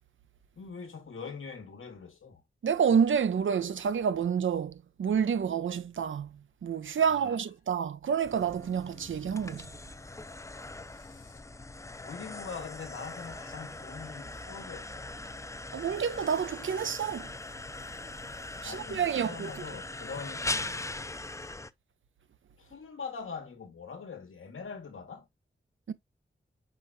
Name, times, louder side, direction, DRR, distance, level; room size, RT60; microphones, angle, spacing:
voice 1, 0.6-2.4 7.0-7.4 10.9-11.4 12.0-15.2 18.4-20.9 22.6-25.3, left 5 dB, 90° left, 1.1 m, -43 dB
voice 2, 2.6-6.3 6.6-9.6 15.7-17.3 18.6-19.5 25.9-26.0, right 7 dB, 75° right, 0.5 m, -28 dB
sound 1, 8.2-21.7, left 2 dB, 15° left, 0.4 m, -40 dB
5.0 x 4.3 x 2.3 m
cardioid pair, 40°, 21 cm